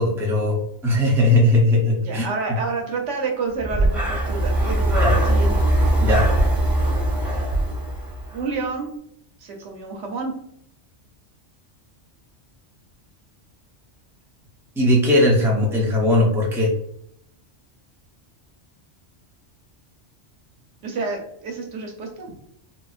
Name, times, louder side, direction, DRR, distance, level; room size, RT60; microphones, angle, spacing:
voice 1, 0.0-2.3 5.0-5.1 6.0-6.3 14.8-16.7, left 1 dB, 5° right, -2 dB, 0.5 m, -19 dB
voice 2, 2.0-5.5 8.3-8.9 9.4-10.3 20.8-22.3, right 4 dB, 90° right, 2 dB, 1.1 m, -29 dB
Breathing, 3.6-8.5, right 1 dB, 30° right, 1.4 m, -20 dB
4.0 x 2.1 x 2.4 m, 0.72 s
omnidirectional pair, 1.2 m